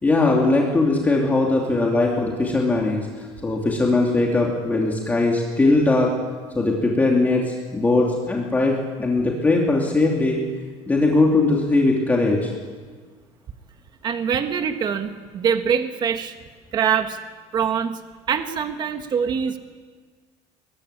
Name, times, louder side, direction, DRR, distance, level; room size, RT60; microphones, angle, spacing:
voice 1, 0.0-6.1 6.5-10.4 10.9-12.5, left 2 dB, 10° left, -2 dB, 2.9 m, -20 dB
voice 2, 14.0-16.3 16.7-17.2 17.5-18.0 18.3-19.6, right 7 dB, 30° right, 7 dB, 1.5 m, -23 dB
24.5 x 21.5 x 10.0 m, 1.5 s
cardioid pair, 170°, 14 cm